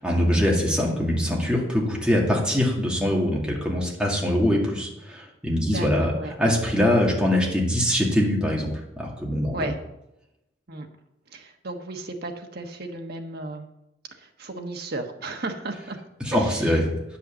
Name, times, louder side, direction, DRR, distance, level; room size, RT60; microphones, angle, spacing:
voice 1, 0.0-6.1 6.4-8.7 9.0-9.7 16.3-16.8, left 1 dB, 5° right, -3 dB, 2.1 m, -23 dB
voice 2, 5.6-6.3 9.5-9.8 10.7-10.9 11.3-13.7 14.2-16.0 16.3-16.8, right 2 dB, 60° right, 4 dB, 1.3 m, -34 dB
9.3 x 5.6 x 7.4 m, 0.88 s
head